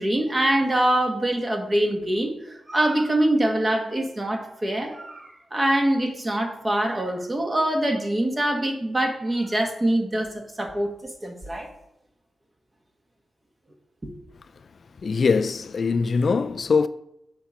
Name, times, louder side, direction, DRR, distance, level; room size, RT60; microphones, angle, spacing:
voice 1, 0.0-11.7, right 1 dB, 25° right, 1.5 m, -24 dB
voice 2, 15.0-16.9, left 5 dB, 55° left, 0.3 m, -22 dB
7.5 x 4.2 x 5.7 m
cardioid pair, 85°, 0 cm